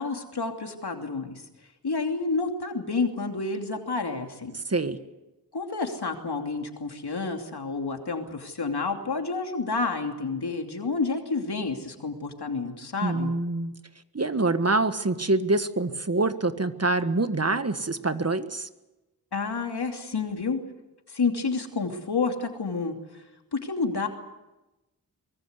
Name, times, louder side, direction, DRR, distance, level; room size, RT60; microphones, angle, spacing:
voice 1, 0.0-1.4 1.8-4.6 5.5-13.3 19.3-20.6 21.1-22.9 23.5-24.1, left 4 dB, 80° left, 4 dB, 2.9 m, -29 dB
voice 2, 4.7-5.0 13.0-13.7 14.1-18.7, right 2 dB, 40° right, 10 dB, 1.5 m, -25 dB
24.0 x 21.0 x 8.1 m, 1.0 s
wide cardioid pair, 55°, 38 cm